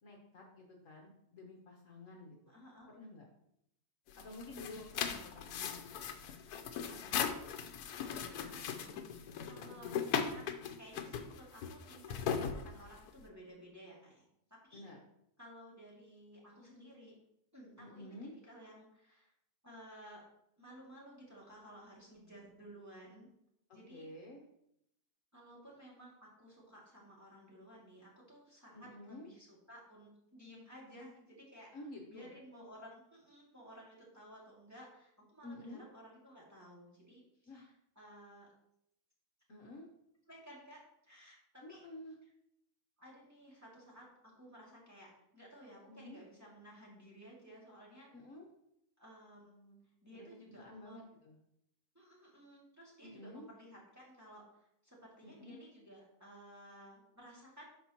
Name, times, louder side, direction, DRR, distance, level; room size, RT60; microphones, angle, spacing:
voice 1, 0.0-2.6 2.9-3.3 4.2-6.2 6.9-7.3 9.6-10.2 14.7-15.0 17.8-18.3 23.7-24.4 28.7-29.3 31.7-32.3 35.4-35.9 37.5-37.7 39.5-39.9 41.6-42.2 45.9-46.2 48.1-48.5 50.1-51.4 53.0-53.5 55.2-55.6, left 2 dB, 60° left, 0 dB, 1.4 m, -51 dB
voice 2, 2.5-2.9 5.5-5.9 8.2-10.4 10.8-14.9 15.4-17.2 17.5-18.2 18.5-19.3 19.6-20.2 20.6-23.3 23.7-24.1 25.3-31.7 32.1-38.5 40.3-41.9 43.0-48.1 49.0-51.1 51.9-57.7, equal, 10° right, -6 dB, 2.3 m, -56 dB
sound 1, 4.1-13.2, left 7 dB, 80° left, 1.2 m, -39 dB
12.0 x 4.5 x 2.9 m, 0.76 s
omnidirectional pair, 1.7 m